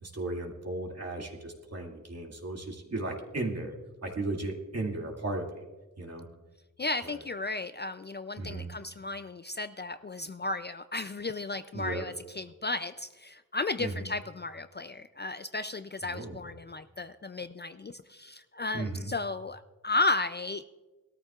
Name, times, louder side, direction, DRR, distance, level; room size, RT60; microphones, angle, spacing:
voice 1, 0.0-3.7 4.0-5.7 6.0-6.3 7.0-7.2 8.4-8.7 11.7-12.1 13.8-14.1 16.1-16.5 18.7-19.1, right 2 dB, 50° right, 0 dB, 2.4 m, -35 dB
voice 2, 6.8-20.6, left 3 dB, 30° left, 11 dB, 0.4 m, -34 dB
21.5 x 13.5 x 2.4 m, 1.2 s
wide cardioid pair, 110°, 33 cm